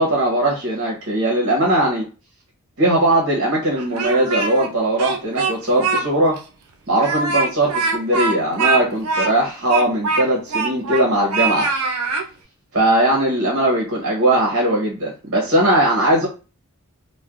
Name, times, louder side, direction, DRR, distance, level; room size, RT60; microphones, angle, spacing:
voice 1, 0.0-2.1 2.8-6.4 6.9-11.7 12.7-16.3, right 1 dB, 55° right, -3 dB, 0.9 m, -19 dB
Speech, 3.7-4.7 5.0-6.0 6.4-6.5 7.0-11.1 11.3-12.3, right 4 dB, 80° right, 0.5 m, -22 dB
3.1 x 2.2 x 2.4 m, 0.33 s
head